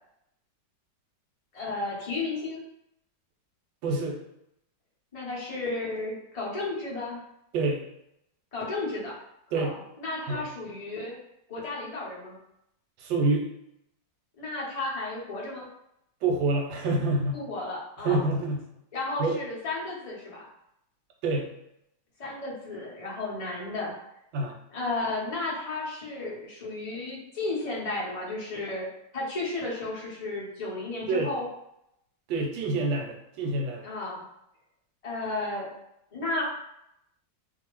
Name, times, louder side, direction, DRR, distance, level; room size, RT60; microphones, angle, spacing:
voice 1, 1.5-2.6 5.1-7.2 8.5-9.1 9.5-11.2 11.5-12.3 14.4-15.6 17.3-18.2 18.9-20.5 22.2-23.9 24.7-28.9 29.1-31.4 33.8-34.2 35.0-35.7 36.1-36.4, left 2 dB, 55° left, -5 dB, 0.4 m, -33 dB
voice 2, 3.8-4.2 7.5-7.8 9.5-9.7 10.3-10.4 13.0-13.5 16.2-17.4 18.0-18.6 19.2-19.4 21.2-21.5 24.3-24.6 31.1-31.3 32.3-33.8, right 2 dB, 90° right, 1 dB, 1.4 m, -27 dB
2.7 x 2.5 x 3.0 m, 0.80 s
omnidirectional pair, 2.0 m